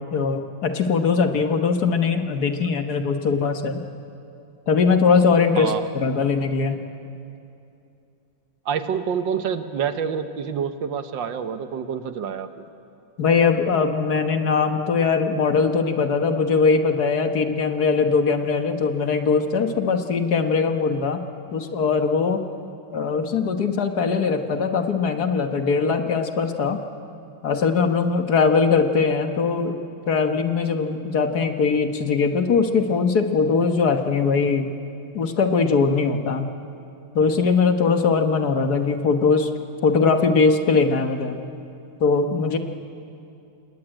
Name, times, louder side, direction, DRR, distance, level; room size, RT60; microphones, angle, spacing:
voice 1, 0.0-3.8 4.7-6.8 13.2-21.2 21.5-22.4 22.9-26.8 27.4-29.8 30.1-34.7 35.1-36.4 37.1-39.5 39.8-41.4 42.0-42.6, left 5 dB, 55° left, 7 dB, 1.7 m, -21 dB
voice 2, 8.7-12.7, right 7 dB, 70° right, 10 dB, 1.8 m, -27 dB
28.0 x 21.0 x 9.0 m, 2.7 s
omnidirectional pair, 2.1 m